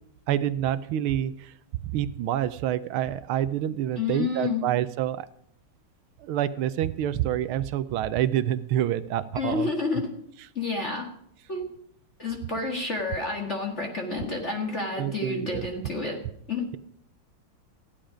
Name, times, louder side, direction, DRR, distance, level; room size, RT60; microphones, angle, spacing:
voice 1, 0.3-1.5 1.8-5.3 6.2-9.7 15.0-15.7, right 11 dB, 75° right, 14 dB, 1.5 m, -27 dB
voice 2, 4.0-4.6 9.4-10.1 10.6-11.1 11.5-11.7 12.2-16.2 16.5-16.7, left 3 dB, 35° left, 1 dB, 1.9 m, -29 dB
15.5 x 10.5 x 5.0 m, 0.70 s
omnidirectional pair, 2.4 m